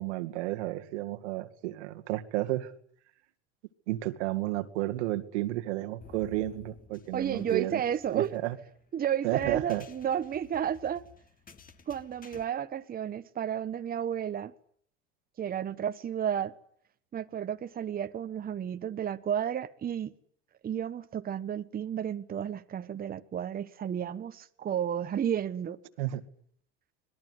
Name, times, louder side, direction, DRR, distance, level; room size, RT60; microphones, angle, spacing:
voice 1, 0.0-2.7 3.9-7.8 8.1-8.6 9.2-9.8 26.0-26.2, right 16 dB, 85° right, 2.3 m, -32 dB
sound 1, 6.0-12.4, left 6 dB, 25° left, 2.4 m, -53 dB
voice 2, 7.1-8.3 8.9-11.0 11.9-14.5 15.4-16.5 17.1-20.1 20.6-25.8, right 9 dB, 25° right, 1.3 m, -32 dB
25.5 x 21.0 x 9.7 m
supercardioid pair, 120°, 34 cm